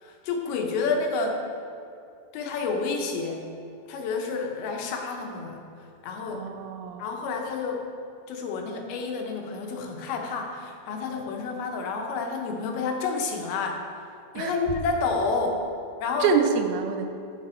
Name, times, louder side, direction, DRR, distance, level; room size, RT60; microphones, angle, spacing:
voice 1, 0.0-1.4 2.3-3.4 3.9-5.6 6.0-6.5 7.0-7.9 8.3-13.8 14.3-15.6 16.0-16.3, left 4 dB, 90° left, 2 dB, 2.9 m, -29 dB
voice 2, 6.3-7.0 14.4-14.6 16.2-17.1, right 6 dB, 85° right, 6 dB, 2.5 m, -26 dB
10.5 x 6.0 x 4.3 m, 2.6 s
omnidirectional pair, 4.2 m